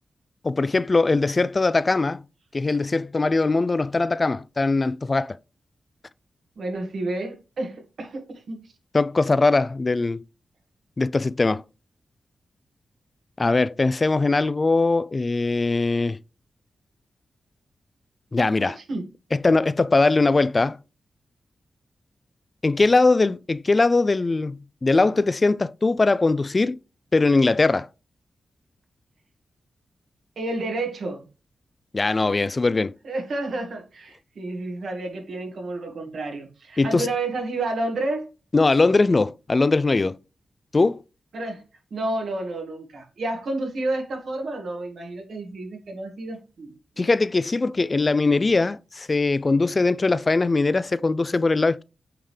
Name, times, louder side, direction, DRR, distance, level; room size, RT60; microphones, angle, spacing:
voice 1, 0.4-2.2 2.5-5.4 8.9-10.2 11.0-11.6 13.4-16.2 18.3-18.8 19.3-20.8 22.6-26.8 27.1-27.9 31.9-32.9 36.8-37.1 38.5-40.2 40.7-41.0 47.0-51.8, left 3 dB, 35° left, 0.3 m, -21 dB
voice 2, 6.6-8.6 18.8-19.0 30.4-31.2 33.0-38.3 41.3-41.6 41.9-47.1, right 2 dB, 70° right, 1.9 m, -30 dB
8.7 x 3.7 x 3.3 m
wide cardioid pair, 100°, 0 cm